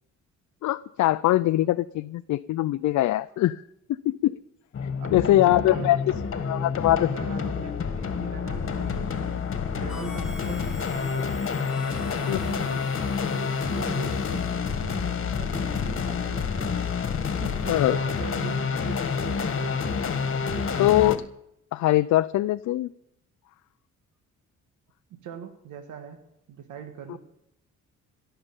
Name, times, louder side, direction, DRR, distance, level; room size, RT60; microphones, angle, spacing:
voice 1, 0.6-3.6 3.9-4.3 4.8-6.0 6.4-7.1 9.9-10.0 12.3-12.4 17.7-18.0 20.8-21.2 21.7-22.9, left 15 dB, 65° left, 12 dB, 0.5 m, -22 dB
sound 1, 4.7-21.2, left 6 dB, 45° left, 1.6 m, -28 dB
voice 2, 5.0-5.9 6.5-11.3 11.8-16.7 17.0-19.9 25.2-26.2 26.5-27.2, right 7 dB, 80° right, 5 dB, 1.7 m, -41 dB
Harmonica, 9.9-14.9, left 1 dB, ahead, 1.3 m, -45 dB
16.5 x 6.8 x 8.9 m, 0.80 s
cardioid pair, 90°, 30 cm